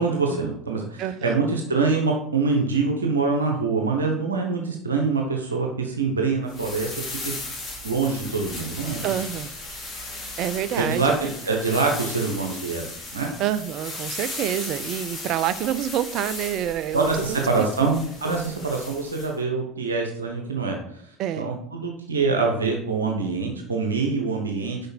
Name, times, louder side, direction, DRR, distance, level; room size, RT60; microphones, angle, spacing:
voice 1, 0.0-6.9 7.2-7.3 7.8-9.0 10.8-13.3 16.9-20.8 21.4-24.9, right 4 dB, 85° right, 2 dB, 0.9 m, -25 dB
voice 2, 1.0-1.4 9.0-9.5 10.4-11.3 13.4-17.7 21.2-21.5, right 11 dB, 50° right, 14 dB, 0.5 m, -27 dB
sound 1, 6.5-19.3, left 2 dB, 30° left, 3.1 m, -36 dB
6.5 x 5.3 x 4.4 m, 0.71 s
figure-of-eight pair, 70°, 0 cm